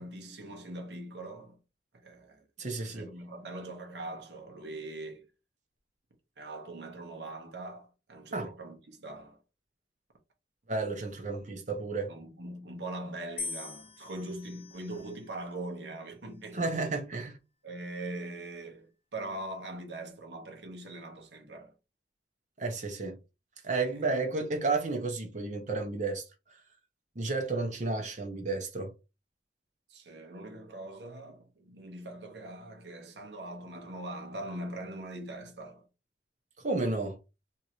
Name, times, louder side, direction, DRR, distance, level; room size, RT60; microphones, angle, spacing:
voice 1, 0.0-1.6 2.0-2.4 2.8-5.2 6.4-9.4 11.5-11.6 12.1-17.0 17.6-21.7 23.9-24.1 29.9-35.9, right 1 dB, 75° right, 1.1 m, -42 dB
voice 2, 2.6-3.1 8.3-8.5 10.7-12.1 16.5-17.4 22.6-23.2 23.6-26.2 27.2-28.9 36.6-37.2, right 3 dB, 45° right, 0.8 m, -32 dB
sound 1, 13.4-15.6 16.4-16.9, left 4 dB, 35° left, 0.6 m, -43 dB
3.5 x 2.8 x 2.9 m
head